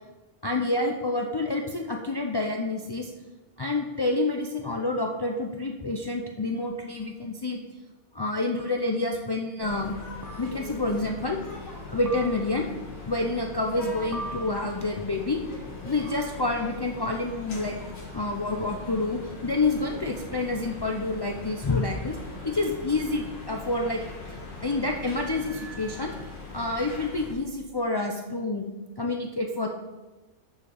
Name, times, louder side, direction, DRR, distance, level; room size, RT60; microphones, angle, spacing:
voice 1, 0.4-3.1 3.6-7.6 8.1-10.0 10.4-11.4 11.9-12.7 13.1-15.4 15.8-17.8 18.1-22.2 22.4-24.0 24.6-26.1 26.5-28.7 29.0-29.7, left 2 dB, 40° left, 1 dB, 0.3 m, -28 dB
sound 1, 7.0-7.1 8.6-9.0 10.2-10.8 12.1-12.8 14.1-15.1, right 2 dB, 20° right, 0.5 m, -41 dB
sound 2, 9.6-27.3, left 3 dB, 70° left, 2.5 m, -40 dB
6.9 x 5.7 x 6.6 m, 1.1 s
omnidirectional pair, 1.5 m